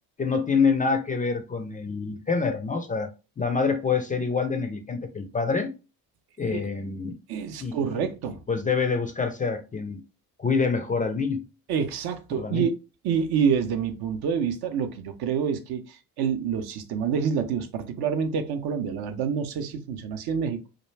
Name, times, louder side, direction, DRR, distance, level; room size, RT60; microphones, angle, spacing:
voice 1, 0.2-3.1 3.4-5.7 6.4-7.1 7.6-7.7 8.5-10.0 10.4-11.4 12.3-12.7, left 5 dB, 20° left, 0.4 m, -26 dB
voice 2, 7.3-8.4 11.7-12.7 13.0-20.7, right 7 dB, 60° right, 0.6 m, -27 dB
2.4 x 2.1 x 3.1 m
hypercardioid pair, 60°, 43 cm